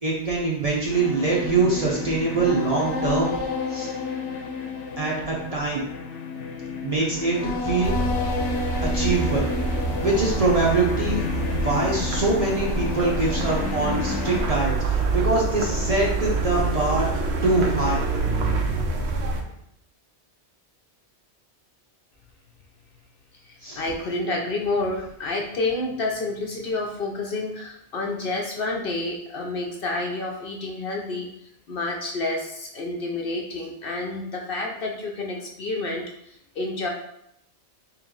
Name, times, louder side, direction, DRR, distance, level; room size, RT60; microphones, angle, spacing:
voice 1, 0.0-3.3 3.7-3.9 5.0-5.8 6.8-7.9 8.9-9.5 10.0-11.2 11.5-18.0 23.6-23.8, right 3 dB, 40° right, -4 dB, 0.6 m, -24 dB
sound 1, 0.9-14.5, left 4 dB, 85° left, 0.9 m, -31 dB
sound 2, 7.8-19.4, right 3 dB, 70° right, 0.8 m, -26 dB
voice 2, 23.4-31.3 31.7-36.9, left 2 dB, 60° left, 0 dB, 0.7 m, -29 dB
3.1 x 3.0 x 3.7 m, 0.76 s
omnidirectional pair, 1.2 m